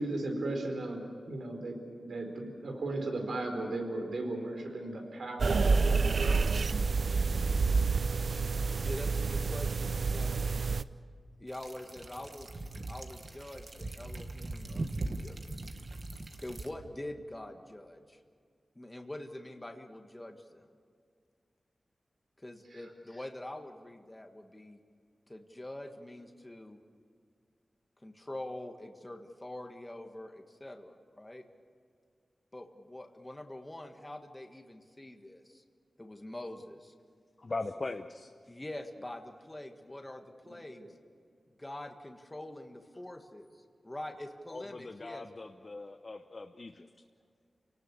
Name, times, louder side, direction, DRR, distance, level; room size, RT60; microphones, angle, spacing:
voice 1, 0.0-6.3 22.7-22.8 40.4-40.9, right 2 dB, 80° right, 3 dB, 4.4 m, -37 dB
sound 1, 5.4-10.8, right 4 dB, 60° right, 0.6 m, -28 dB
voice 2, 8.8-10.4 11.4-15.3 16.4-18.2 18.7-20.7 22.4-24.8 25.3-26.8 28.0-31.4 32.5-35.6 36.0-36.9 38.5-40.9 41.6-45.2, left 1 dB, 15° left, 4 dB, 1.7 m, -45 dB
sound 2, 11.5-16.7, right 2 dB, 45° right, 1.6 m, -40 dB
voice 3, 37.4-38.3 44.5-46.9, left 3 dB, 40° left, 6 dB, 0.8 m, -40 dB
29.5 x 18.5 x 7.0 m, 2.2 s
wide cardioid pair, 115°, 0 cm